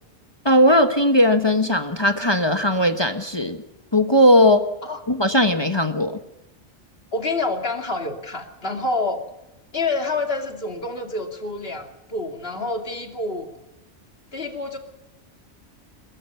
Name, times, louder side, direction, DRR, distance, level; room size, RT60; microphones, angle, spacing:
voice 1, 0.4-3.6 3.9-4.7 5.1-6.2, equal, 20° left, 7 dB, 1.2 m, -18 dB
voice 2, 7.1-9.2 9.7-13.5 14.3-14.8, left 3 dB, 55° left, 4 dB, 2.8 m, -27 dB
23.5 x 20.0 x 5.6 m, 0.90 s
omnidirectional pair, 1.2 m